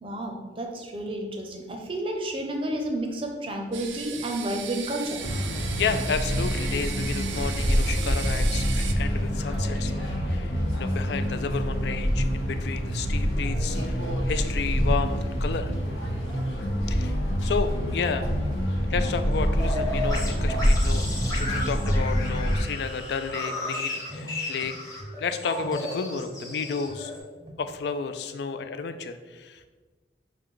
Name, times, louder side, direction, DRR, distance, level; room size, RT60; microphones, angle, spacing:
voice 1, 0.0-5.2 27.4-27.5, right 1 dB, 30° right, 2 dB, 0.6 m, -31 dB
sound 1, 3.7-8.9, right 7 dB, 90° right, 0.4 m, -37 dB
sound 2, 5.2-22.6, equal, 85° left, 1.0 m, -26 dB
voice 2, 5.8-9.9 10.2-15.7 16.9-17.2 17.4-18.2 18.9-21.1 21.3-24.7 25.2-27.1 27.6-29.7, left 5 dB, 65° left, 9 dB, 0.3 m, -32 dB
sound 3, 19.1-27.2, left 1 dB, 20° left, 0.9 m, -34 dB
6.1 x 2.2 x 3.7 m, 1.3 s
head